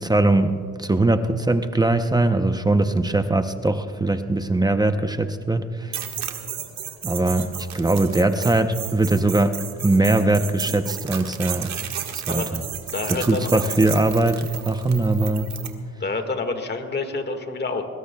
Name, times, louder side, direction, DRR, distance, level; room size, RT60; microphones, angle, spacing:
voice 1, 0.0-6.0 7.0-11.7 12.3-12.6 13.1-15.5, right 2 dB, 15° right, 8 dB, 0.7 m, -21 dB
sound 1, 5.9-15.7, right 9 dB, 65° right, 1.7 m, -33 dB
voice 2, 12.9-13.6 16.0-17.8, left 3 dB, 35° left, 6 dB, 1.8 m, -27 dB
24.0 x 20.5 x 2.3 m, 2.3 s
cardioid pair, 90°, 30 cm